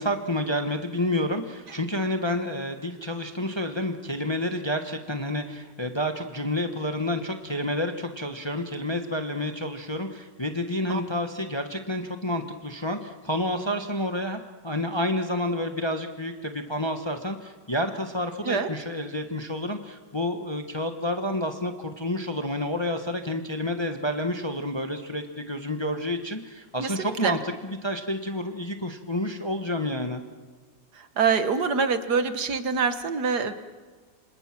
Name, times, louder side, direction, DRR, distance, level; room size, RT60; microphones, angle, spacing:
voice 1, 0.0-30.2, left 1 dB, 15° left, 6 dB, 1.1 m, -29 dB
voice 2, 26.8-27.4 31.2-33.5, right 5 dB, 65° right, 10 dB, 1.8 m, -25 dB
28.0 x 26.5 x 6.0 m, 1.4 s
omnidirectional pair, 1.9 m